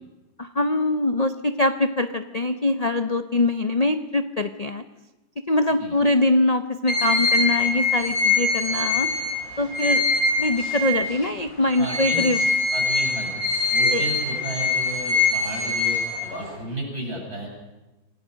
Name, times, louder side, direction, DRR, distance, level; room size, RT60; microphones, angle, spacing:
voice 1, 0.4-4.8 5.5-9.1 9.6-10.0 10.4-12.4 13.9-14.0, left 2 dB, 50° left, 9 dB, 0.4 m, -23 dB
sound 1, 6.9-11.3 11.7-16.6, left 3 dB, 90° left, 8.1 m, -23 dB
voice 2, 11.8-12.2 12.7-17.5, right 1 dB, 55° right, -1 dB, 8.1 m, -33 dB
26.5 x 17.5 x 6.4 m, 1.0 s
omnidirectional pair, 2.0 m